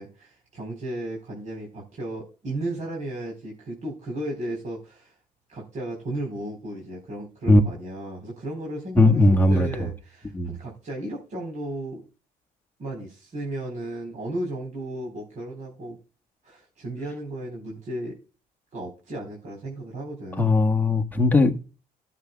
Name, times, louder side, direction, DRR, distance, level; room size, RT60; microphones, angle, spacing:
voice 1, 0.0-5.1 5.5-12.0 12.8-16.0 16.4-18.1 18.7-20.6, right 1 dB, 50° right, 4.3 m, -34 dB
voice 2, 9.0-9.9 10.3-10.5 20.4-21.6, left 2 dB, 10° left, 1.5 m, -18 dB
16.0 x 7.5 x 2.3 m
cardioid pair, 110°, 17 cm